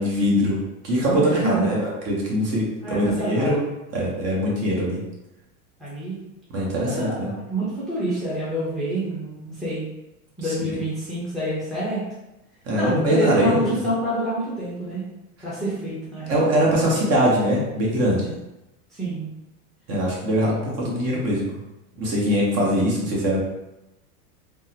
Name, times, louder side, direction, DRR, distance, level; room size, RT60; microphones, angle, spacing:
voice 1, 0.0-3.6 3.9-5.0 6.5-7.3 10.4-10.7 12.6-13.6 16.3-18.3 19.9-21.6 22.0-23.4, equal, 35° right, -4 dB, 1.0 m, -22 dB
voice 2, 1.1-1.8 2.8-3.6 5.8-6.2 6.8-9.9 10.4-12.0 12.7-15.1 15.4-16.5 18.9-19.3 20.4-20.6 22.5-22.8, right 1 dB, ahead, -10 dB, 0.7 m, -27 dB
3.6 x 2.1 x 2.8 m, 0.94 s
supercardioid pair, 130°, 44 cm